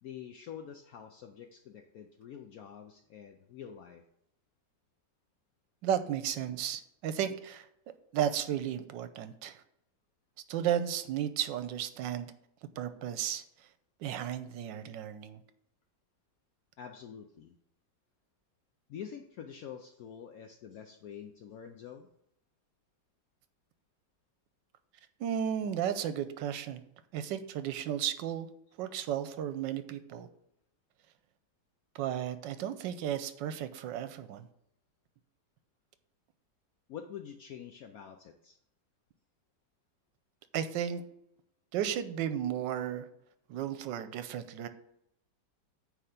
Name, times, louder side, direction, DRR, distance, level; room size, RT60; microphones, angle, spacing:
voice 1, 0.0-4.0 16.8-17.5 18.9-22.1 36.9-38.6, left 8 dB, 65° left, 5 dB, 0.9 m, -46 dB
voice 2, 5.8-7.7 8.1-9.6 10.5-12.3 12.8-13.4 14.0-15.4 25.2-26.8 27.1-28.5 28.8-30.3 31.9-34.5 40.5-41.0 41.7-43.1 43.5-44.7, right 9 dB, 85° right, 11 dB, 1.3 m, -34 dB
9.3 x 3.4 x 6.5 m, 0.75 s
omnidirectional pair, 1.9 m